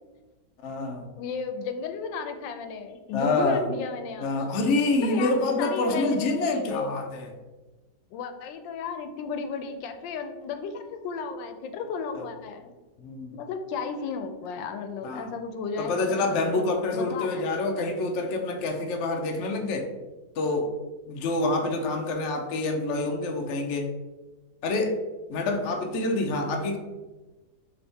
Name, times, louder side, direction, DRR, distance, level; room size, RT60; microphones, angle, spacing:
voice 1, 0.6-1.1 3.1-3.6 4.2-7.3 13.0-13.4 15.0-15.3 15.8-19.9 20.4-20.7 21.1-23.9 24.6-25.0 25.3-26.8, left 2 dB, 70° left, 4 dB, 0.7 m, -27 dB
voice 2, 1.2-4.3 5.0-7.0 8.1-12.7 13.3-17.5, left 5 dB, 90° left, 7 dB, 1.3 m, -34 dB
3.5 x 3.4 x 4.0 m, 1.2 s
omnidirectional pair, 2.0 m